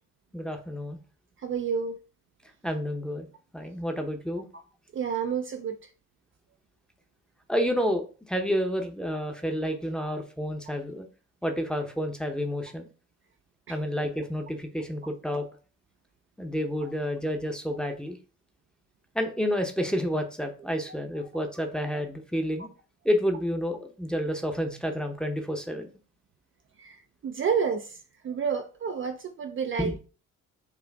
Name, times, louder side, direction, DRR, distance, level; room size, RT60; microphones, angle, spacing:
voice 1, 0.3-1.0 2.6-3.3 3.5-4.4 7.5-11.1 11.4-12.8 13.7-15.5 16.4-18.2 19.1-22.7 23.0-25.9 29.8-30.0, equal, 5° left, 0.7 m, -29 dB
voice 2, 1.4-2.0 4.9-5.8 13.7-13.8 16.8-16.9 26.8-27.0 27.2-28.0 28.2-30.0, right 6 dB, 40° right, 0.4 m, -29 dB
4.7 x 2.5 x 3.4 m
cardioid pair, 90°, 30 cm